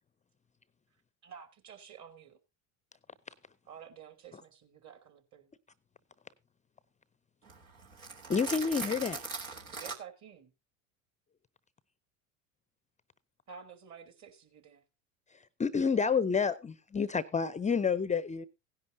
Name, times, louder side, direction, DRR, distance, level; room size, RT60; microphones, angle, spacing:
voice 1, 1.2-2.4 3.6-5.5 9.7-10.5 13.5-14.8, right 7 dB, 40° right, 2.9 m, -51 dB
voice 2, 7.4-10.0, right 4 dB, 75° right, 3.8 m, -40 dB
voice 3, 8.3-9.1 15.6-18.5, left 5 dB, 15° left, 0.6 m, -29 dB
16.5 x 10.5 x 2.7 m
figure-of-eight pair, 70°, 42 cm